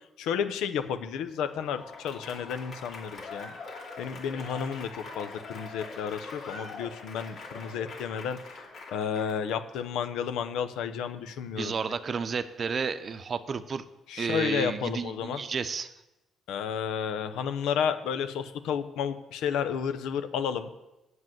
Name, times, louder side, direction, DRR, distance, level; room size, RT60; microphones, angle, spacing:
voice 1, 0.2-3.6 4.0-8.4 8.9-11.7 14.1-15.4 16.5-20.7, left 7 dB, 85° left, 10 dB, 0.7 m, -32 dB
Applause / Crowd, 1.4-9.6, left 3 dB, 60° left, 2.5 m, -43 dB
voice 2, 11.6-13.8 14.2-15.9, right 5 dB, 45° right, 12 dB, 0.7 m, -31 dB
7.9 x 7.5 x 7.7 m, 0.97 s
cardioid pair, 90°, 0 cm